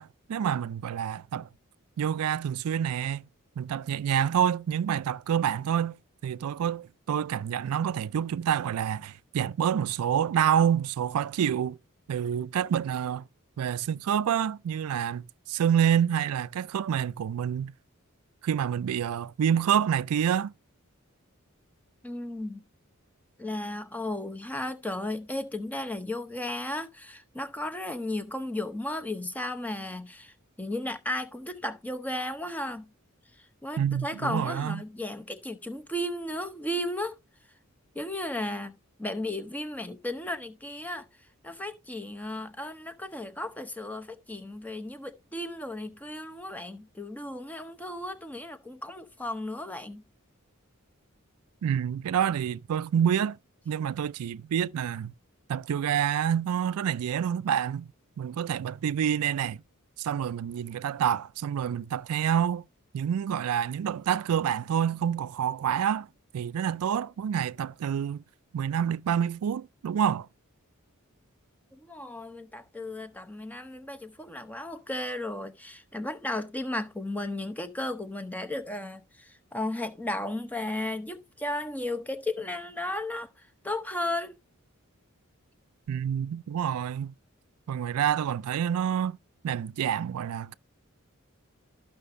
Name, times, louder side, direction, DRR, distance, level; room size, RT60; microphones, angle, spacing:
voice 1, 0.0-1.5 2.0-3.3 3.6-11.8 12.1-13.2 13.6-17.7 18.4-20.5 33.8-34.8 51.6-53.4 53.7-55.1 55.5-57.9 58.2-59.6 60.0-62.7 62.9-66.1 66.3-68.2 68.5-70.3 85.9-87.1 87.7-89.2 89.4-90.5, right 8 dB, 85° right, 0.3 m, -27 dB
voice 2, 22.0-22.6 23.4-32.9 33.6-37.2 37.9-41.1 41.4-50.0 71.7-84.4, left 1 dB, 5° left, 0.6 m, -34 dB
13.0 x 5.9 x 2.5 m
head